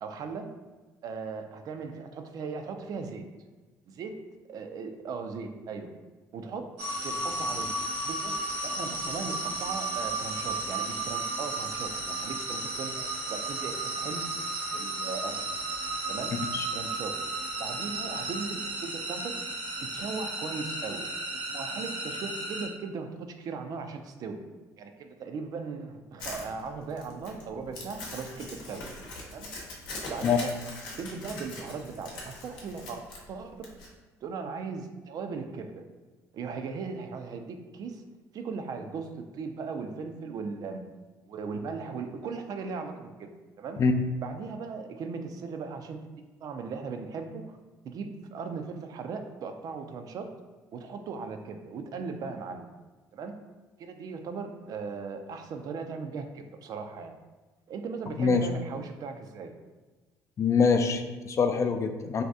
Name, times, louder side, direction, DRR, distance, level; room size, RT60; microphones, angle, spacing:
voice 1, 0.0-0.5 1.0-3.3 3.9-4.2 4.5-5.9 6.3-7.7 8.0-8.4 8.6-14.2 14.7-15.5 16.1-16.4 16.7-17.2 17.6-19.4 19.8-21.1 21.5-24.4 24.8-28.9 29.3-29.5 30.1-30.5 31.0-33.7 34.2-35.8 36.3-38.0 38.3-40.8 41.3-43.3 43.6-43.8 44.2-46.0 46.4-47.6 47.8-50.3 50.7-52.7 53.1-53.3 53.8-57.1 57.7-59.6, right 5 dB, 55° right, 6 dB, 0.4 m, -38 dB
sound 1, 6.8-22.6, right 2 dB, 75° right, 1.2 m, -34 dB
Crumpling crinkling, 26.2-33.9, left 2 dB, 75° left, 0.8 m, -41 dB
voice 2, 60.4-62.2, left 5 dB, 40° left, 6 dB, 0.3 m, -24 dB
2.7 x 2.3 x 3.4 m, 1.3 s
supercardioid pair, 70°, 7 cm